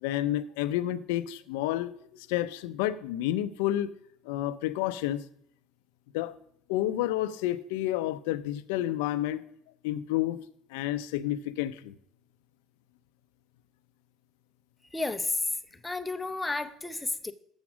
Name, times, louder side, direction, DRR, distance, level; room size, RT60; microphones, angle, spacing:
voice 1, 0.0-4.0 4.2-5.2 6.1-6.4 6.7-9.4 9.8-10.4 10.7-11.9, left 13 dB, 85° left, 0.5 m, -30 dB
voice 2, 14.9-17.3, left 2 dB, 15° left, 0.7 m, -32 dB
7.2 x 7.2 x 6.0 m
supercardioid pair, 95°, 0 cm